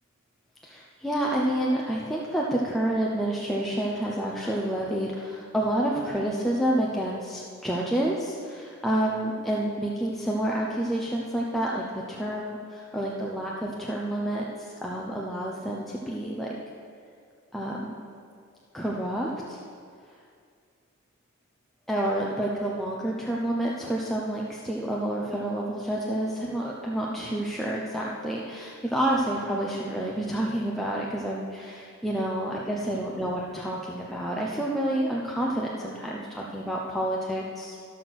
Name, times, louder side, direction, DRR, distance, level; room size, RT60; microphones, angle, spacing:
voice 1, 0.6-14.5 14.8-16.5 17.5-17.9 18.7-19.6 21.9-37.8, right 1 dB, ahead, -4 dB, 0.7 m, -29 dB
13.0 x 6.0 x 6.2 m, 2.2 s
head